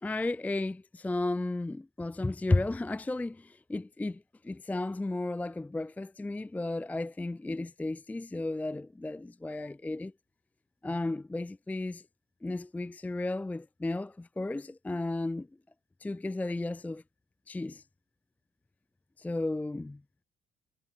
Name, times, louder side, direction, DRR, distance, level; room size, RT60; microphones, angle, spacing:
voice 1, 0.0-10.1 10.8-12.0 12.4-15.5 16.0-17.0 17.5-17.8 19.2-20.0, left 2 dB, 10° left, 0.5 m, -33 dB
cardioid pair, 110°, 17 cm